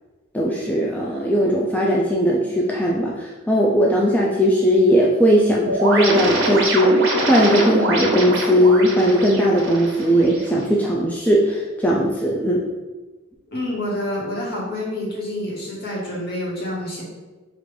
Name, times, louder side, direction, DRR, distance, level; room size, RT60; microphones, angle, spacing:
voice 1, 0.3-12.6, equal, 5° left, -3 dB, 0.3 m, -18 dB
sound 1, 5.7-10.6, right 1 dB, 60° right, 1.0 m, -24 dB
voice 2, 13.5-17.0, left 1 dB, 50° left, -4 dB, 1.3 m, -27 dB
5.0 x 2.5 x 3.1 m, 1.2 s
head